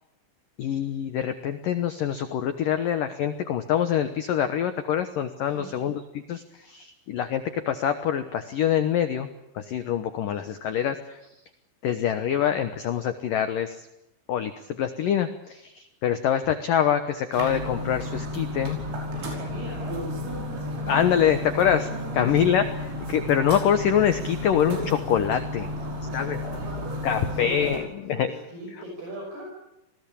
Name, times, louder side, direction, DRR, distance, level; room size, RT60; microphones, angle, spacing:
voice 1, 0.6-6.0 6.3-9.3 9.5-11.2 11.8-13.9 14.3-18.8 20.8-21.9 22.1-22.7 23.1-25.7 26.1-26.4 27.0-28.3, left 9 dB, 90° left, 9 dB, 1.9 m, -25 dB
voice 2, 5.4-5.9 19.1-20.1 22.1-22.5 25.5-29.4, right 1 dB, 55° right, -1 dB, 7.9 m, -40 dB
sound 1, 17.3-27.8, left 1 dB, 90° right, 8.1 m, -32 dB
28.0 x 20.0 x 8.5 m, 0.86 s
omnidirectional pair, 5.7 m